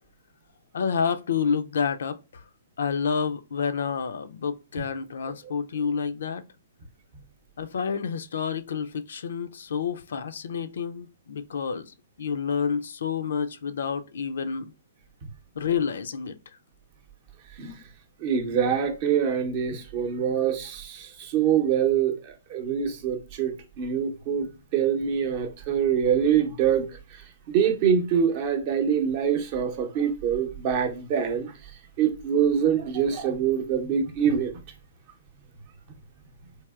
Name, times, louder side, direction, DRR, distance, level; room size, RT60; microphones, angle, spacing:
voice 1, 0.7-2.2 2.8-6.4 7.6-11.9 12.2-14.7 15.6-16.4, left 6 dB, 70° left, 0.3 m, -29 dB
voice 2, 18.2-26.9 27.5-31.5 32.0-34.5, right 8 dB, 40° right, 0.7 m, -25 dB
3.3 x 2.7 x 2.3 m
hypercardioid pair, 130°, 0 cm